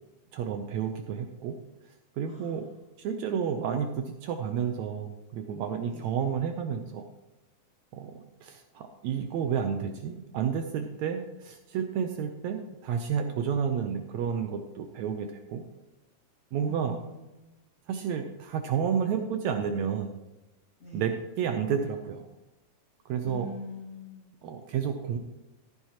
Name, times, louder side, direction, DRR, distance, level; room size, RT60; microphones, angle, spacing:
voice 1, 0.3-1.6 2.2-2.7 3.0-7.1 7.9-15.6 16.5-17.0 17.9-20.2 20.9-22.3 23.1-23.5 24.4-25.2, right 7 dB, 75° right, 6 dB, 1.8 m, -31 dB
voice 2, 2.3-2.8 5.9-6.1 16.6-17.6 20.8-21.0 23.2-24.4, left 1 dB, 30° left, -3 dB, 2.0 m, -43 dB
14.5 x 9.5 x 2.9 m, 1.0 s
omnidirectional pair, 3.6 m